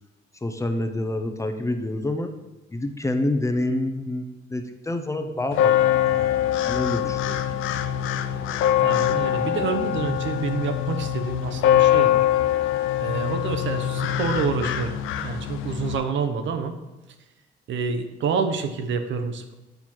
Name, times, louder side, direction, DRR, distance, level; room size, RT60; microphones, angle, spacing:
voice 1, 0.4-2.3 2.7-5.8 6.1-7.4, left 1 dB, 15° left, 7 dB, 0.7 m, -27 dB
sound 1, 5.5-16.0, left 11 dB, 85° left, 0.5 m, -23 dB
voice 2, 8.8-12.3 13.0-16.7 17.7-19.5, right 5 dB, 70° right, 7 dB, 0.8 m, -28 dB
8.0 x 4.4 x 4.4 m, 1.0 s
cardioid pair, 90°, 20 cm